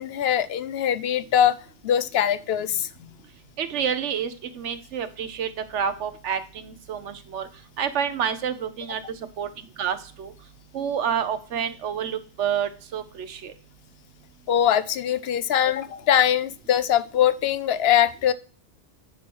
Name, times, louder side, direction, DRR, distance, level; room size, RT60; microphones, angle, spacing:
voice 1, 0.0-1.5 1.8-3.1 14.5-18.3, left 10 dB, 65° left, 16 dB, 0.8 m, -22 dB
voice 2, 3.6-7.5 7.8-9.0 9.4-9.5 9.8-10.3 10.7-13.5, right 8 dB, 85° right, 11 dB, 1.2 m, -28 dB
10.0 x 4.5 x 6.2 m, 0.38 s
omnidirectional pair, 1.2 m